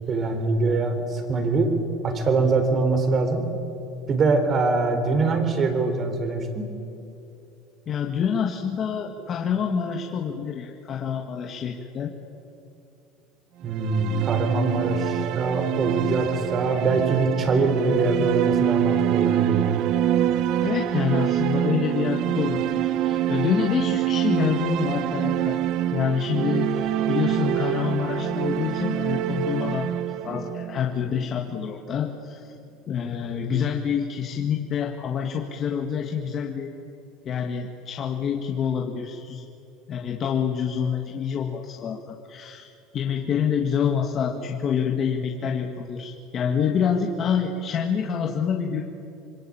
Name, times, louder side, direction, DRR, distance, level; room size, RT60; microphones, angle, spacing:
voice 1, 0.1-1.7 2.0-3.5 4.1-6.7 13.6-19.8, right 3 dB, 30° right, 7 dB, 4.0 m, -23 dB
voice 2, 7.9-12.1 20.6-25.6 25.9-29.9 30.2-32.5 32.9-36.7 37.2-39.5 39.9-42.7 42.9-48.8, left 7 dB, 35° left, 2 dB, 1.8 m, -27 dB
sound 1, 13.7-31.6, right 11 dB, 55° right, 0.8 m, -25 dB
26.0 x 22.0 x 8.8 m, 2.7 s
cardioid pair, 140°, 0 cm